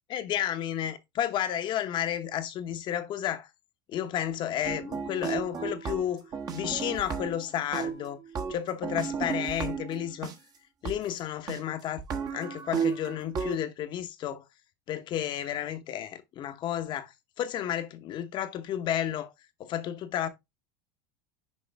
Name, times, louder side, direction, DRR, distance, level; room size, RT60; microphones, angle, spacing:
voice 1, 0.1-3.5 3.9-6.2 6.5-8.2 8.5-10.3 10.8-12.0 12.3-14.4 14.9-19.3 19.6-20.3, left 10 dB, 40° left, 0.9 m, -32 dB
sound 1, 4.6-7.4 7.7-10.3 10.8-10.9 11.5-11.6 12.0-13.6, right 6 dB, 30° right, 1.1 m, -33 dB
6.4 x 4.8 x 3.4 m
supercardioid pair, 135°, 12 cm